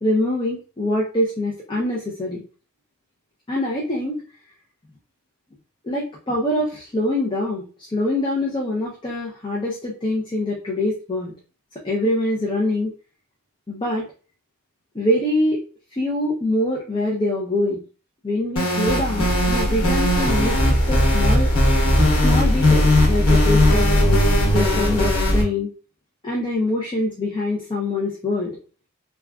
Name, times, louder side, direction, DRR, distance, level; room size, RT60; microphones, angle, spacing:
voice 1, 0.0-2.4 3.5-4.2 5.8-11.3 11.8-12.9 13.7-14.1 14.9-15.6 15.9-17.8 18.2-21.5 22.2-25.7 26.2-28.6, left 1 dB, 20° left, -4 dB, 0.5 m, -24 dB
sound 1, 18.6-25.4, left 1 dB, 85° left, 1.0 m, -18 dB
3.5 x 2.3 x 2.2 m, 0.36 s
head